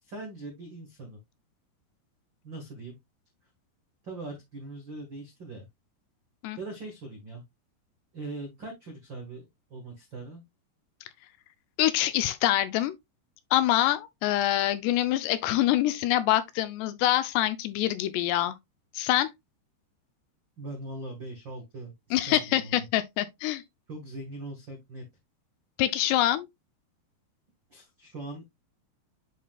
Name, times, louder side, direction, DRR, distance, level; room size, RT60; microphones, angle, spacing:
voice 1, 0.0-1.2 2.4-3.0 4.0-5.7 6.6-7.4 8.1-9.4 9.7-10.4 20.6-22.8 23.9-25.0 27.7-28.4, right 2 dB, 75° right, 1.0 m, -41 dB
voice 2, 11.8-12.9 13.5-18.5 18.9-19.3 22.1-23.6 25.8-26.5, left 14 dB, 80° left, 2.6 m, -25 dB
11.0 x 3.8 x 2.3 m
omnidirectional pair, 5.1 m